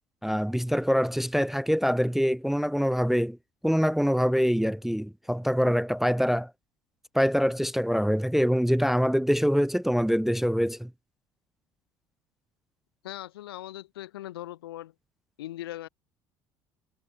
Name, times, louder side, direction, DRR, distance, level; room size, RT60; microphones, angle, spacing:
voice 1, 0.2-3.4 3.6-6.5 7.1-10.9, equal, ahead, 0.5 m, -24 dB
voice 2, 13.0-14.9 15.4-15.9, left 14 dB, 70° left, 0.7 m, -39 dB
figure-of-eight pair, 60°, 13 cm